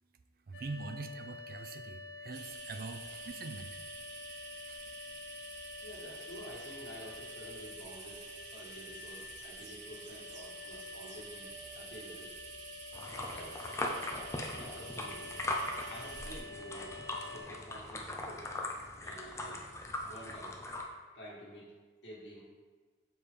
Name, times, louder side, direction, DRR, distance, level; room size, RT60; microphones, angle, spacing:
sound 1, 0.5-17.4, left 3 dB, 65° left, 0.6 m, -49 dB
voice 1, 0.5-3.8 4.7-4.8, right 3 dB, 55° right, 8 dB, 0.4 m, -43 dB
sound 2, 2.3-16.4, right 4 dB, 85° right, 0.9 m, -49 dB
voice 2, 5.8-11.5 11.7-12.3 13.1-13.7 14.6-15.4 15.9-18.4 19.0-19.6 20.1-20.6 21.1-22.4, equal, 85° left, -7 dB, 1.6 m, -50 dB
sound 3, 12.9-20.8, left 1 dB, 15° left, 0.5 m, -40 dB
6.8 x 4.2 x 3.3 m, 1.4 s
head